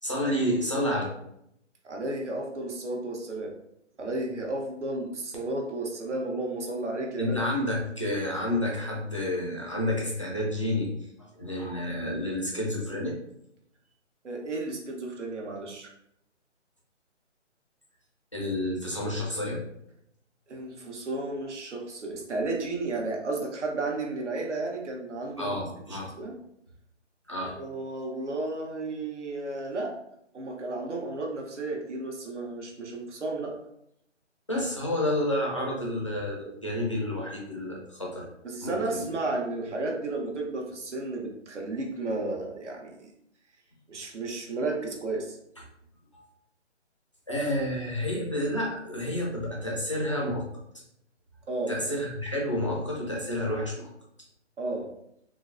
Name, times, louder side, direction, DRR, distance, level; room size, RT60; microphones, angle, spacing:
voice 1, 0.0-1.0 7.2-13.2 18.3-19.6 25.4-26.1 27.3-27.5 34.5-38.3 38.6-39.1 46.1-46.2 47.3-50.4 51.7-53.9, left 1 dB, 25° left, -3 dB, 0.4 m, -30 dB
voice 2, 1.8-3.5 4.0-7.4 14.2-15.9 20.5-25.6 25.9-26.3 27.4-29.9 30.3-33.5 38.4-43.1 43.9-45.4 51.5-51.7 54.6-54.9, right 2 dB, 70° right, 0 dB, 0.9 m, -33 dB
3.7 x 2.1 x 2.5 m, 0.75 s
figure-of-eight pair, 160°, 36 cm